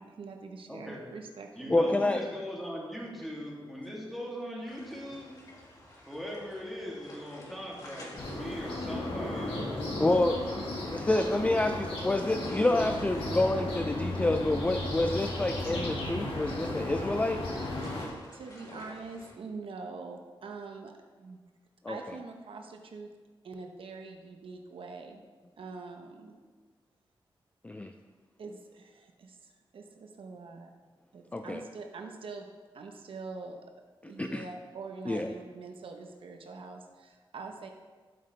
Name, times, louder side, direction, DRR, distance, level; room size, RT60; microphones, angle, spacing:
voice 1, 0.0-1.8 17.9-21.4 21.9-23.1 23.4-25.2 25.6-26.4 28.4-30.7 31.1-32.5 32.7-33.6 34.0-37.7, right 4 dB, 75° right, 3 dB, 0.9 m, -44 dB
voice 2, 0.7-1.0 1.6-5.3 6.1-10.0, equal, ahead, -5 dB, 2.6 m, -40 dB
voice 3, 1.7-2.3 10.0-10.4 10.9-17.4 21.8-22.0 27.6-27.9 31.3-31.6 34.2-34.4 35.1-35.3, left 2 dB, 15° left, 6 dB, 0.4 m, -28 dB
sound 1, 4.7-19.3, left 1 dB, 40° left, 2.0 m, -52 dB
sound 2, 8.2-18.1, left 1 dB, 85° left, 2.2 m, -35 dB
12.0 x 7.8 x 3.3 m, 1.4 s
wide cardioid pair, 110°, 9 cm